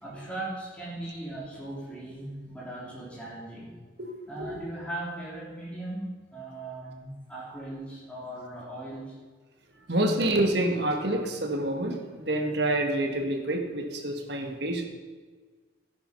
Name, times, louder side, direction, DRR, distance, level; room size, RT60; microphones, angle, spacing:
voice 1, 0.0-3.7 4.3-9.2, right 1 dB, 5° left, -6 dB, 3.9 m, -38 dB
voice 2, 9.9-14.9, right 1 dB, 60° right, 3 dB, 1.8 m, -27 dB
13.0 x 10.0 x 5.5 m, 1.4 s
head